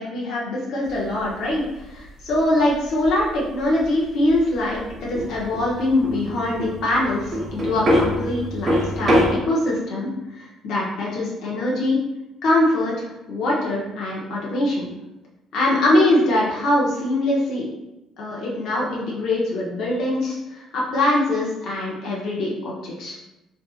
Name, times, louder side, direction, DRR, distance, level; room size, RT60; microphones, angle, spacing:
voice 1, 0.0-10.1 10.4-12.0 12.4-14.9 15.5-17.7 18.2-23.1, left 1 dB, 70° left, -4 dB, 0.7 m, -23 dB
sound 1, 0.9-9.3, equal, 35° right, 0.6 m, -25 dB
2.6 x 2.4 x 2.3 m, 0.93 s
cardioid pair, 135°, 0 cm